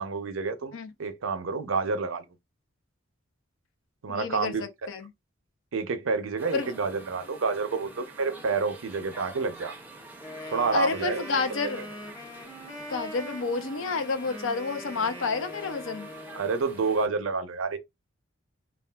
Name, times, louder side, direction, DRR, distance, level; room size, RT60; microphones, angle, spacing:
voice 1, 0.0-2.2 4.0-4.6 5.7-9.7 10.5-11.2 11.5-11.6 16.3-17.8, right 4 dB, 85° right, 0.6 m, -29 dB
voice 2, 4.1-5.1 6.5-6.7 10.7-11.9 12.9-16.1, left 4 dB, 80° left, 0.5 m, -30 dB
sound 1, 6.4-17.1, right 2 dB, 10° right, 0.5 m, -47 dB
Wind instrument woodwind instrument, 10.2-16.5, left 1 dB, 15° left, 0.7 m, -42 dB
3.4 x 2.4 x 2.2 m
head